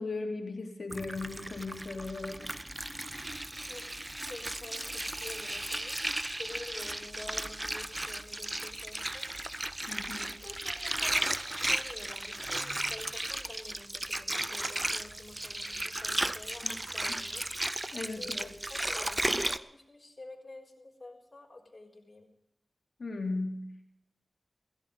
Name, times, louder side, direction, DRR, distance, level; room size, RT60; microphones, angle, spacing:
voice 1, 0.0-2.5 9.9-10.3 16.6-16.7 17.9-18.5 23.0-23.7, left 3 dB, 75° left, 2 dB, 3.2 m, -37 dB
Water, 0.9-19.6, right 1 dB, 25° right, 0.8 m, -35 dB
voice 2, 4.3-6.0 6.4-9.3 10.1-17.5 18.1-22.3, left 2 dB, 45° left, -3 dB, 4.2 m, -49 dB
17.0 x 15.0 x 5.4 m, 0.81 s
cardioid pair, 40°, 0 cm